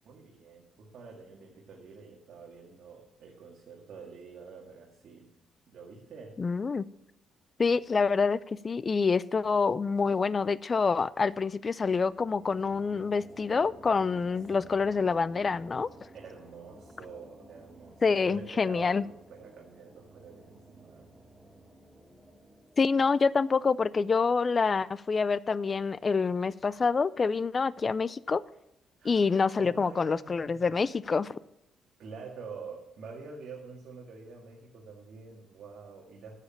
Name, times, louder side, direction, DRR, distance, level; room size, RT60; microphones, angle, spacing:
voice 1, 0.0-5.3 5.7-6.4 14.5-14.8 16.1-21.1 29.0-30.7 32.0-36.4, right 5 dB, 65° right, -2 dB, 2.0 m, -47 dB
voice 2, 6.4-6.8 7.6-8.4 8.6-15.9 18.0-19.0 22.8-28.4 29.0-31.4, left 5 dB, 35° left, 19 dB, 0.4 m, -27 dB
sound 1, 11.8-25.1, right 1 dB, 5° right, 1.7 m, -54 dB
9.7 x 7.5 x 7.4 m, 0.82 s
cardioid pair, 90°, 0 cm